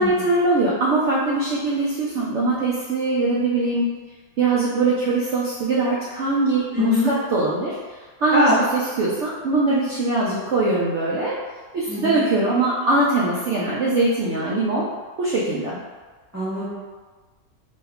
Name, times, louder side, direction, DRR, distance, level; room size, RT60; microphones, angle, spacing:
voice 1, 0.0-3.9 4.4-7.8 8.2-11.4 11.7-14.9 15.2-15.8, right 2 dB, 80° right, -6 dB, 0.6 m, -22 dB
voice 2, 6.7-7.1 8.3-8.5 11.9-12.2 16.3-16.7, left 2 dB, 20° right, -12 dB, 0.4 m, -21 dB
3.0 x 2.3 x 3.4 m, 1.4 s
omnidirectional pair, 1.8 m